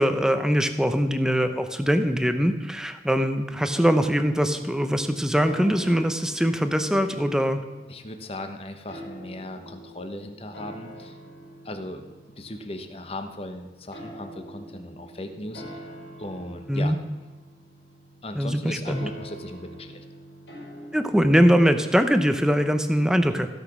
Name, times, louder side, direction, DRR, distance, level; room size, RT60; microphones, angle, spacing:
voice 1, 0.0-7.6 16.7-17.0 18.3-19.1 20.9-23.5, equal, 5° right, 9 dB, 0.7 m, -22 dB
sound 1, 3.7-22.2, equal, 90° left, 4.6 m, -45 dB
voice 2, 7.9-11.2 11.6-15.8 16.2-16.9 18.2-20.0, left 1 dB, 35° left, 7 dB, 1.0 m, -37 dB
15.5 x 6.3 x 6.1 m, 1.3 s
head